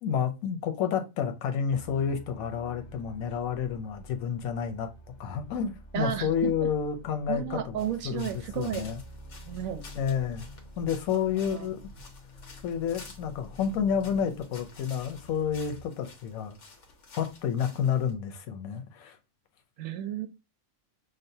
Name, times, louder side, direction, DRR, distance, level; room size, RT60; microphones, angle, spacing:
voice 1, 0.0-4.9 5.2-9.0 10.0-10.5 10.8-11.8 12.6-16.6 17.2-19.2, left 7 dB, 90° left, 1.1 m, -30 dB
sound 1, 1.7-15.9, left 1 dB, 40° left, 0.7 m, -49 dB
voice 2, 5.9-6.7 7.3-8.8 9.4-9.8 11.1-11.7 19.8-20.3, right 10 dB, 90° right, 1.0 m, -33 dB
sound 2, 7.8-18.1, left 3 dB, 65° left, 1.2 m, -51 dB
6.3 x 2.1 x 2.7 m
omnidirectional pair, 1.4 m